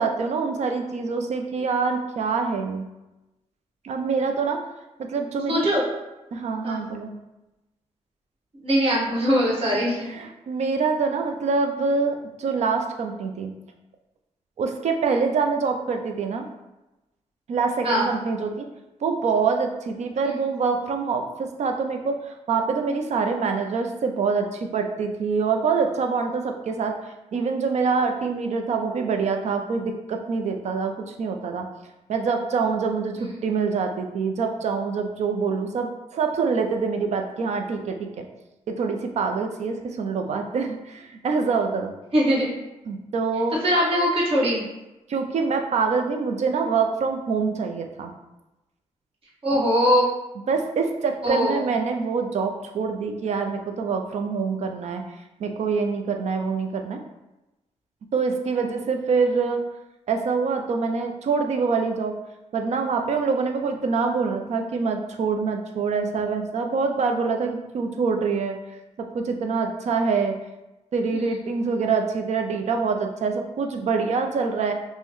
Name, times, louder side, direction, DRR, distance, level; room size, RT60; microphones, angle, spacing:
voice 1, 0.0-2.8 3.8-4.6 5.0-5.7 6.3-7.1 10.1-13.5 14.6-16.5 17.5-18.7 19.0-26.9 27.3-31.7 32.1-38.2 38.7-41.9 42.9-43.6 45.1-48.1 50.5-55.0 55.4-57.0 58.1-59.6 60.1-62.2 62.5-68.6 69.0-70.4 70.9-74.7, right 5 dB, 65° right, 4 dB, 0.5 m, -25 dB
voice 2, 5.5-5.8 6.6-6.9 8.6-10.1 17.8-18.1 20.2-20.3 33.2-33.3 42.1-42.5 43.6-44.6 49.4-50.0 51.2-51.7 71.1-71.4, equal, 50° right, -6 dB, 1.4 m, -21 dB
5.4 x 2.1 x 3.0 m, 1.0 s
wide cardioid pair, 115°, 12 cm